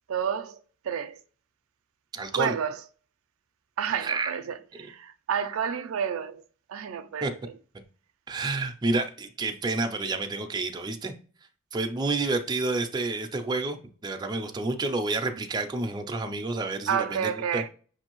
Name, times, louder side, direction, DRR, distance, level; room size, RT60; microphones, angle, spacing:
voice 1, 0.1-0.6 0.9-1.2 2.4-2.7 3.8-6.4 6.7-7.5 16.9-17.7, right 7 dB, 85° right, 0.4 m, -30 dB
voice 2, 2.1-2.5 4.0-4.4 4.8-4.9 7.2-7.3 8.3-11.1 11.7-17.6, right 3 dB, 20° right, 0.4 m, -29 dB
6.0 x 2.6 x 3.0 m
head